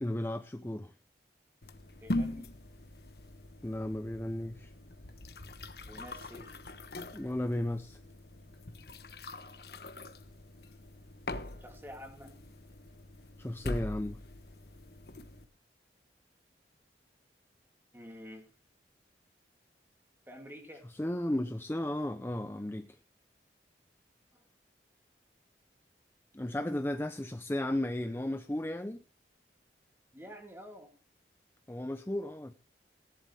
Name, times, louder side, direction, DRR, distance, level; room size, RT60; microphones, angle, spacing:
voice 1, 0.0-0.9 3.6-4.7 7.1-8.0 13.4-14.2 20.9-22.9 26.3-29.0 31.7-32.5, left 1 dB, 15° left, 0.5 m, -34 dB
sound 1, 1.6-15.4, left 1 dB, 60° left, 1.2 m, -42 dB
voice 2, 2.0-2.6 5.8-6.6 11.6-12.4 17.9-18.5 20.3-20.9 24.3-24.4 30.1-30.9, equal, 15° right, 2.5 m, -49 dB
17.5 x 11.5 x 3.3 m
head